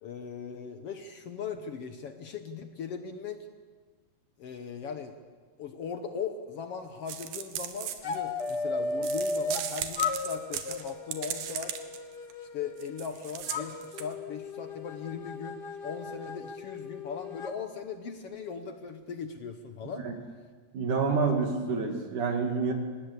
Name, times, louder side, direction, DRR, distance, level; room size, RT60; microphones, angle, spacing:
voice 1, 0.0-3.4 4.4-5.2 5.6-11.7 12.5-20.0, left 6 dB, 65° left, 7 dB, 1.5 m, -39 dB
sound 1, 7.1-8.6 9.0-12.0 12.3-12.4 12.8-14.1, right 10 dB, 85° right, 3.2 m, -37 dB
sound 2, 8.0-9.7 9.9-13.1 13.5-17.5, left 3 dB, 50° left, 1.3 m, -35 dB
voice 2, 20.7-22.7, right 4 dB, 65° right, 3 dB, 3.6 m, -28 dB
25.5 x 20.0 x 8.2 m, 1.5 s
omnidirectional pair, 4.0 m